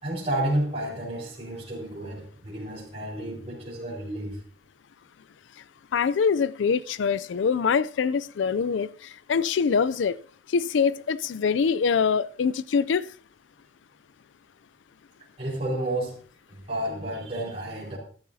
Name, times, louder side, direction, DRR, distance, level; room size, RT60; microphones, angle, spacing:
voice 1, 0.0-4.3 15.4-16.2 16.7-18.0, right 1 dB, 35° right, 4.5 m, -31 dB
voice 2, 5.9-10.2 10.5-13.1, left 6 dB, 90° left, 0.4 m, -24 dB
14.0 x 13.0 x 2.7 m
head